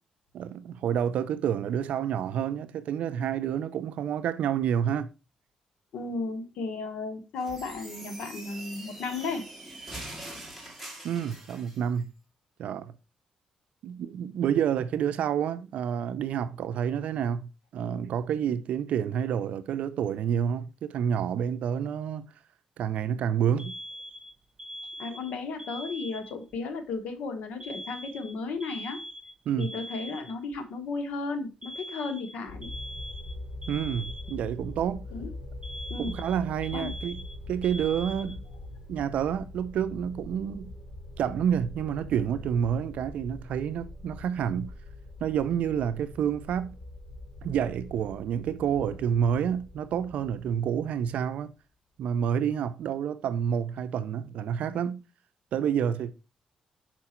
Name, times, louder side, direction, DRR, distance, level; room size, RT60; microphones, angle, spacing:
voice 1, 0.3-5.1 11.0-12.1 12.6-12.9 13.8-22.3 22.8-23.7 29.5-29.7 33.7-35.1 36.0-37.2 37.5-38.4 38.9-40.7 41.2-44.7 45.2-46.8 47.4-51.5 52.0-55.0 55.5-56.1, right 8 dB, 80° right, 0.5 m, -29 dB
voice 2, 5.9-9.5 10.2-10.4 25.0-29.0 29.6-32.7 35.1-35.3 35.9-36.2 36.7-37.0, left 3 dB, 85° left, 1.2 m, -34 dB
sound 1, 7.4-11.8, right 1 dB, ahead, 1.7 m, -43 dB
Alarm, 23.6-26.6 27.6-30.6 31.6-34.6 35.6-38.6, equal, 35° right, 1.0 m, -42 dB
sound 2, 32.5-51.4, left 2 dB, 50° left, 3.5 m, -43 dB
5.8 x 4.4 x 4.3 m
cardioid pair, 120°, 2 cm